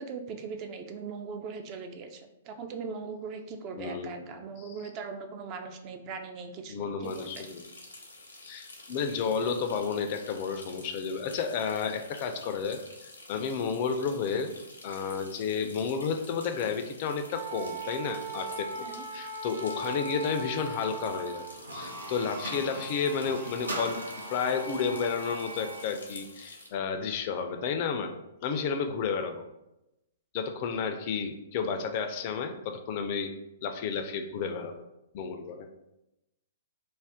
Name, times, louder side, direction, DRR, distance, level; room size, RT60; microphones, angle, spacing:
voice 1, 0.0-7.5 18.8-19.1, right 5 dB, 35° right, 6 dB, 0.3 m, -40 dB
voice 2, 3.8-4.2 4.6-4.7 6.7-7.7 8.4-14.5 14.8-18.7 19.1-21.5 21.7-28.1 28.4-29.4 30.3-33.3 33.6-34.8 35.1-35.7, left 6 dB, 45° left, 7 dB, 0.3 m, -31 dB
sound 1, 7.0-26.7, left 2 dB, 85° left, 0.6 m, -49 dB
Wind instrument woodwind instrument, 17.3-21.6, right 3 dB, 55° right, 1.0 m, -38 dB
sound 2, 21.5-25.9, right 2 dB, 85° right, 0.6 m, -39 dB
2.4 x 2.1 x 3.4 m, 0.90 s
figure-of-eight pair, 120°, 0 cm